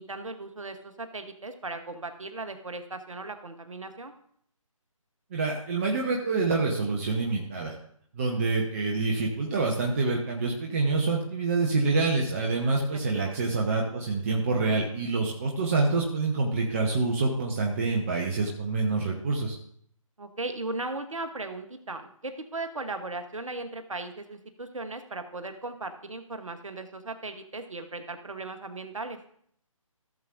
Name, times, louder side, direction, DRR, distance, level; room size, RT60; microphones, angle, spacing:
voice 1, 0.0-4.1 12.9-13.4 20.2-29.2, right 2 dB, 65° right, 7 dB, 1.0 m, -37 dB
voice 2, 5.3-7.7 8.1-19.6, right 3 dB, 25° right, 0 dB, 0.8 m, -26 dB
15.5 x 7.2 x 2.5 m, 0.65 s
figure-of-eight pair, 145°, 18 cm